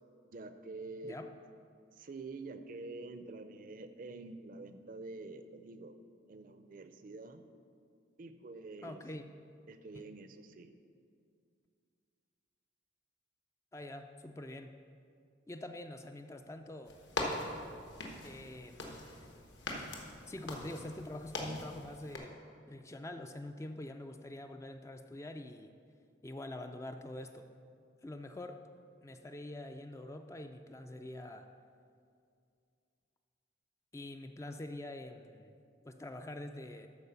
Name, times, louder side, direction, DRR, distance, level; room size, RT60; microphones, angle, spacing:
voice 1, 0.2-1.2 2.0-6.0 6.3-7.4 8.2-9.0 9.7-10.7, right 3 dB, 45° right, 9 dB, 0.5 m, -47 dB
voice 2, 1.0-1.3 8.8-9.2 9.9-10.1 13.7-14.7 15.5-17.0 18.2-19.3 20.3-22.4 22.7-25.7 26.2-27.5 28.0-28.7 29.0-31.5 33.9-35.5 35.8-36.9, left 1 dB, 15° left, 7 dB, 0.3 m, -45 dB
sound 1, 16.9-22.2, left 2 dB, 70° left, 1.3 m, -42 dB
12.5 x 4.6 x 6.7 m, 2.4 s
head